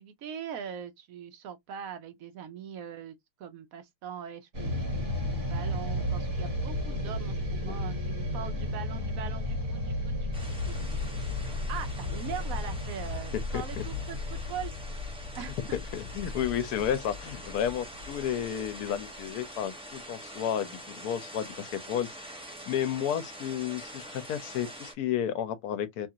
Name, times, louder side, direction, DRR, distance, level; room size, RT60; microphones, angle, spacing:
voice 1, 0.0-11.0 11.4-14.7 15.3-15.8, right 8 dB, 70° right, 0.9 m, -42 dB
Medium-heavy spaceship fly-by, 4.5-18.8, left 1 dB, 50° right, 1.7 m, -33 dB
sound 1, 10.3-24.9, right 1 dB, 5° right, 0.5 m, -45 dB
voice 2, 13.5-13.8 15.9-22.1 22.7-26.1, left 9 dB, 80° left, 1.1 m, -32 dB
2.9 x 2.4 x 2.7 m
omnidirectional pair, 1.7 m